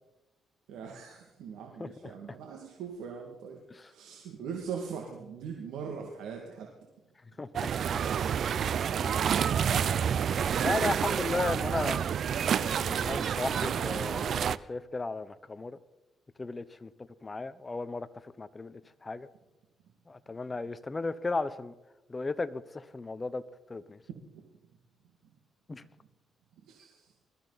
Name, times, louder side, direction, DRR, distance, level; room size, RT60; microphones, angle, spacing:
voice 1, 0.7-3.6 3.9-6.7 9.0-10.5 11.1-11.5 24.3-24.4 26.7-27.1, right 6 dB, 85° right, 1 dB, 2.3 m, -41 dB
voice 2, 1.8-2.1 7.4-8.0 9.0-9.1 9.6-9.8 10.6-12.0 12.5-15.8 16.4-16.9 17.2-18.1 18.4-19.3 20.1-21.7 22.1-23.4 23.7-24.0 25.7-25.8, left 3 dB, 25° left, 14 dB, 0.9 m, -35 dB
sound 1, 7.5-14.6, right 8 dB, 60° right, 0.5 m, -29 dB
21.5 x 14.0 x 4.2 m, 1.0 s
cardioid pair, 90°, 0 cm